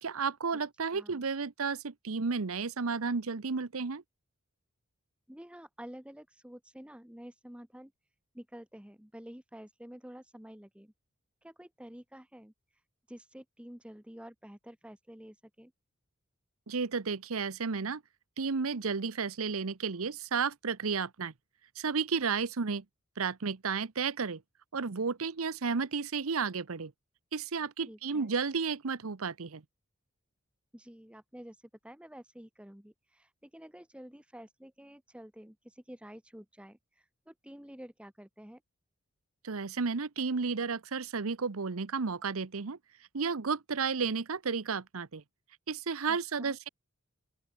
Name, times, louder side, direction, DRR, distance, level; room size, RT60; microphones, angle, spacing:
voice 1, 0.0-4.0 16.7-18.0 18.4-21.3 21.8-22.8 23.2-24.4 24.7-26.9 27.3-29.6 39.4-42.8 43.1-45.2 45.7-46.7, right 5 dB, 80° right, 0.8 m, -32 dB
voice 2, 0.9-1.2 5.3-7.9 8.3-10.9 11.4-12.5 13.1-15.7 27.9-28.3 30.7-31.6 31.8-38.6 46.1-46.6, equal, 5° right, 0.9 m, -50 dB
open air
head